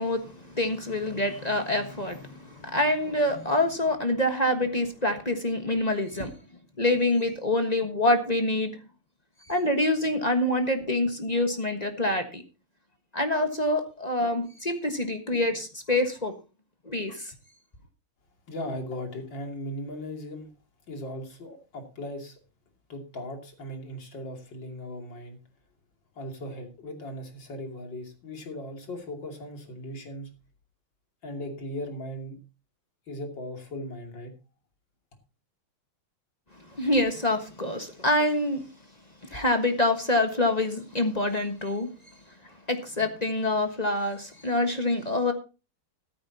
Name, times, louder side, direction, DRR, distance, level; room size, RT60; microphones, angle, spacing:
voice 1, 0.0-6.3 6.8-8.8 9.5-12.4 13.1-16.3 16.8-17.3 36.7-38.6 39.2-41.9 42.7-45.3, left 1 dB, 25° left, 6 dB, 1.2 m, -26 dB
voice 2, 18.5-20.5 20.9-22.4 22.9-25.4 26.1-30.3 31.2-32.4 33.1-34.3, left 1 dB, 60° left, 3 dB, 3.4 m, -38 dB
14.0 x 13.5 x 2.8 m, 0.30 s
omnidirectional pair, 2.3 m